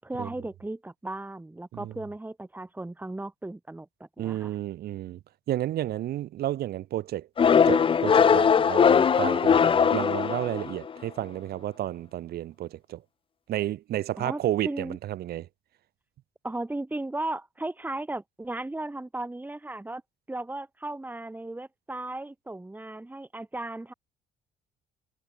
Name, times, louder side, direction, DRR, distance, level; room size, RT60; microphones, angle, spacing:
voice 1, 0.0-4.5 14.2-15.0 16.4-20.0 20.3-23.9, right 2 dB, 10° right, 6.1 m, -36 dB
voice 2, 4.2-5.2 5.5-7.3 7.6-13.0 13.5-15.5, right 13 dB, 70° right, 6.6 m, -31 dB
sound 1, 7.4-10.9, left 7 dB, 30° left, 0.7 m, -20 dB
cardioid pair, 110°, 17 cm